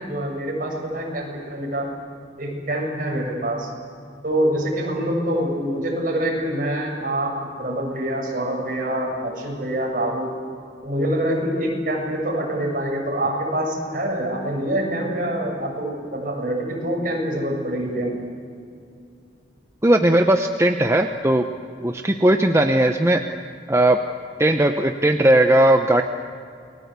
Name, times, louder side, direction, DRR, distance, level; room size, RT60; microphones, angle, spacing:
voice 1, 0.0-1.9 2.4-3.7 4.2-10.3 10.8-18.2, right 1 dB, 50° right, 0 dB, 7.1 m, -25 dB
voice 2, 19.8-21.4 21.8-23.2 23.7-24.0 24.4-26.0, right 1 dB, 15° right, 5 dB, 0.9 m, -17 dB
29.0 x 21.0 x 8.3 m, 2.4 s
head